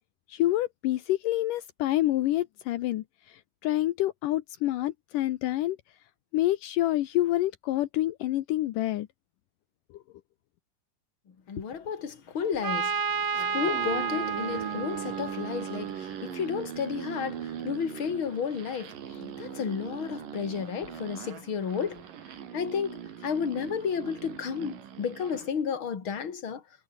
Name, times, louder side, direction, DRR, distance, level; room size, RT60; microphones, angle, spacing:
voice 1, 0.3-5.8 6.3-9.1, left 15 dB, 80° left, 2.5 m, -27 dB
voice 2, 11.5-12.9 13.3-22.0 22.5-26.6, left 6 dB, 40° left, 3.3 m, -32 dB
Trumpet, 12.6-16.4, right 5 dB, 35° right, 2.9 m, -32 dB
sound 1, 13.2-25.5, right 9 dB, 80° right, 3.9 m, -40 dB
omnidirectional pair, 3.8 m